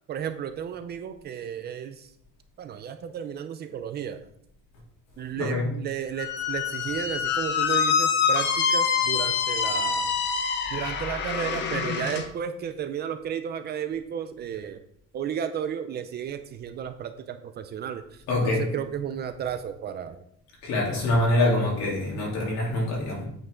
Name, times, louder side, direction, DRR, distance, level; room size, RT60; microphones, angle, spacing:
voice 1, 0.1-2.1 2.6-4.3 5.2-10.1 10.7-14.8 15.1-20.2, right 8 dB, 35° right, 0.4 m, -33 dB
voice 2, 5.3-5.7 18.3-18.6 20.6-23.3, left 1 dB, 70° left, 3.3 m, -25 dB
Squeak, 6.2-12.3, left 6 dB, 40° left, 0.8 m, -26 dB
8.3 x 5.3 x 3.7 m
cardioid pair, 175°, 29 cm